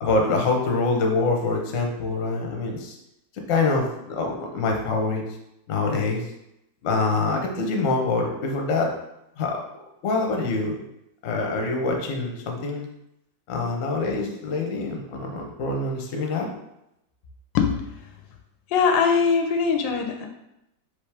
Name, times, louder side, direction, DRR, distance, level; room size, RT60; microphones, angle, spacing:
voice 1, 0.0-2.9 3.5-5.2 5.7-6.2 6.8-8.9 9.4-9.6 10.0-10.7 11.2-12.9 13.5-16.5, left 3 dB, 55° left, 1 dB, 1.0 m, -25 dB
voice 2, 18.7-20.3, left 5 dB, 85° left, 4 dB, 1.3 m, -21 dB
4.9 x 3.1 x 3.3 m, 0.84 s
omnidirectional pair, 2.0 m